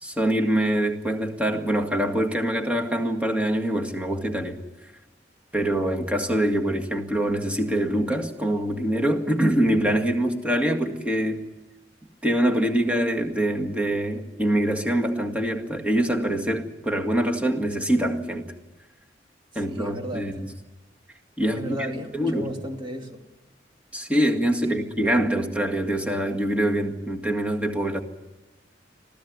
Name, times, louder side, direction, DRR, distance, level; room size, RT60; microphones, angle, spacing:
voice 1, 0.0-4.6 5.5-11.4 12.2-18.5 19.6-20.5 21.4-21.8 22.1-22.5 23.9-28.0, right 1 dB, 5° right, 2 dB, 1.9 m, -24 dB
voice 2, 19.5-20.2 21.5-23.2 24.6-24.8, equal, 25° right, 3 dB, 2.6 m, -34 dB
26.0 x 16.0 x 9.6 m, 1.1 s
head